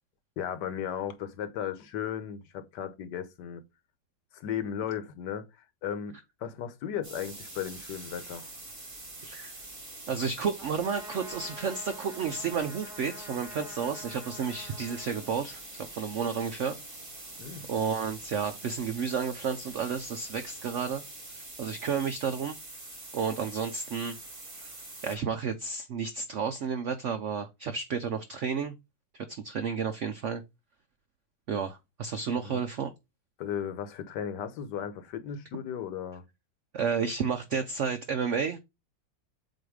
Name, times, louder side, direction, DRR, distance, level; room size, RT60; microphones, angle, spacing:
voice 1, 0.4-3.6 4.3-5.5 5.8-8.5 17.4-17.7 32.4-32.6 33.4-36.2, left 9 dB, 70° left, 1.4 m, -35 dB
sound 1, 7.0-25.2, right 2 dB, 40° right, 3.3 m, -45 dB
voice 2, 9.2-9.5 10.1-16.8 17.7-21.0 21.3-22.6 23.1-24.2 24.5-24.7 25.0-28.8 29.1-30.4 31.5-32.9 36.7-38.6, right 6 dB, 70° right, 0.6 m, -31 dB
Trumpet, 10.6-15.8, left 1 dB, ahead, 1.1 m, -48 dB
7.8 x 2.6 x 4.8 m
omnidirectional pair, 2.0 m